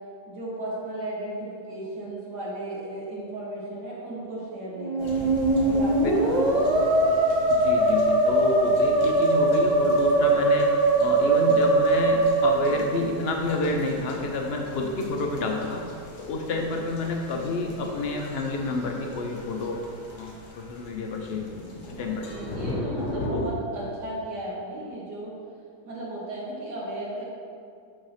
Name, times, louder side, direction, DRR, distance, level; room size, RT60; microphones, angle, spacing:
voice 1, 0.3-6.9 22.2-25.3 25.9-27.2, right 1 dB, 75° right, -6 dB, 2.1 m, -35 dB
Musical instrument, 4.8-13.5, right 2 dB, 40° right, 0.6 m, -21 dB
sound 1, 5.0-23.5, left 1 dB, 90° left, 1.8 m, -40 dB
voice 2, 7.5-15.9 16.2-19.8 20.1-21.5 22.0-22.3 23.1-23.4, left 2 dB, 70° left, 2 dB, 0.6 m, -29 dB
6.5 x 3.6 x 5.7 m, 2.4 s
omnidirectional pair, 1.8 m